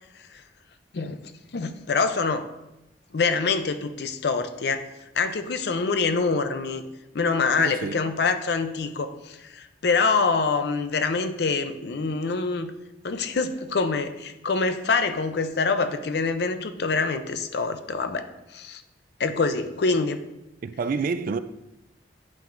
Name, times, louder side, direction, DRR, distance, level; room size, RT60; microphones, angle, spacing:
voice 1, 1.5-2.5 3.1-4.8 5.1-6.8 7.1-12.7 13.0-18.8 19.2-20.2, left 4 dB, 65° left, 0.5 m, -25 dB
voice 2, 7.6-8.1 20.6-21.4, right 4 dB, 50° right, 0.3 m, -28 dB
9.2 x 5.6 x 2.5 m
head